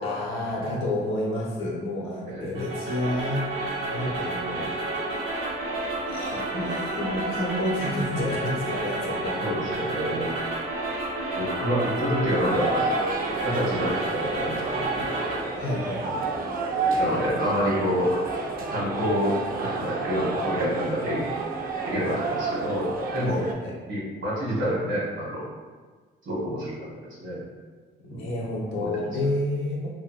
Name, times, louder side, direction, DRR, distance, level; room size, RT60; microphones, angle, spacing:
voice 1, 0.0-3.4 3.9-4.9 6.1-9.4 15.6-16.2 23.3-23.7 28.0-29.9, left 1 dB, 85° left, -3 dB, 0.7 m, -30 dB
voice 2, 2.2-2.7 9.4-10.3 11.4-12.8 13.4-15.5 17.0-18.2 18.7-21.3 21.8-23.5 23.9-25.4 26.2-26.8 27.2-27.4 28.1-28.3 28.7-28.9, equal, 70° right, -6 dB, 1.2 m, -28 dB
sound 1, 2.5-15.4, right 2 dB, 90° right, 0.8 m, -30 dB
sound 2, 12.4-23.5, right 3 dB, 45° right, 0.4 m, -30 dB
2.6 x 2.5 x 2.6 m, 1.4 s
cardioid pair, 90°, 20 cm